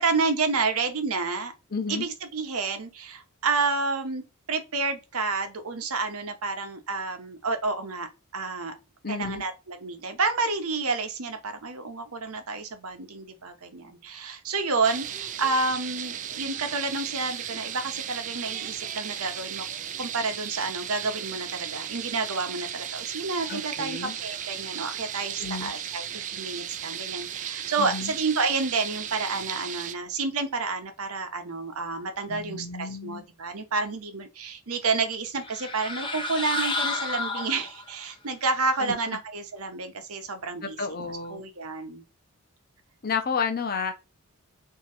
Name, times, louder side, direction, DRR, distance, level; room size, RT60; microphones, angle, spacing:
voice 1, 0.0-1.5 1.9-8.1 8.3-8.7 9.1-19.7 20.0-42.0, right 4 dB, 75° right, 0.9 m, -30 dB
voice 2, 1.7-2.1 9.0-9.4 23.5-24.1 25.4-25.7 27.8-28.1 32.3-33.2 38.8-38.9 40.6-41.4 43.0-43.9, left 5 dB, 45° left, 0.8 m, -31 dB
sound 1, 14.8-30.0, right 9 dB, 35° right, 0.3 m, -35 dB
sound 2, 35.4-38.0, left 2 dB, 20° left, 0.5 m, -31 dB
3.7 x 2.8 x 4.2 m
head